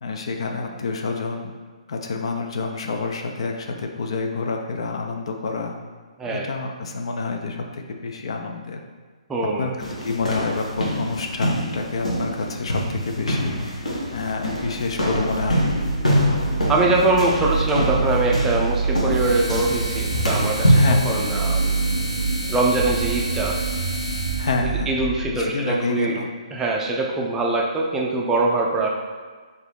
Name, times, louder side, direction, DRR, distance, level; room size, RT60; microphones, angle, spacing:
voice 1, 0.0-1.5 1.9-5.7 6.2-8.8 9.6-9.7 10.0-15.7 20.7-21.2 24.4-24.9 25.3-26.3, left 4 dB, 50° left, 3 dB, 0.5 m, -28 dB
voice 2, 9.3-9.7 16.7-21.7 22.5-23.6 24.6-26.2 26.5-28.9, right 2 dB, 10° right, -2 dB, 0.4 m, -23 dB
sound 1, 9.8-21.0, equal, 75° left, 1.1 m, -24 dB
sound 2, 13.8-25.4, right 4 dB, 80° right, 0.7 m, -27 dB
sound 3, 19.1-24.6, left 1 dB, 25° left, 1.0 m, -33 dB
4.0 x 2.7 x 4.6 m, 1.5 s
figure-of-eight pair, 130°, 4 cm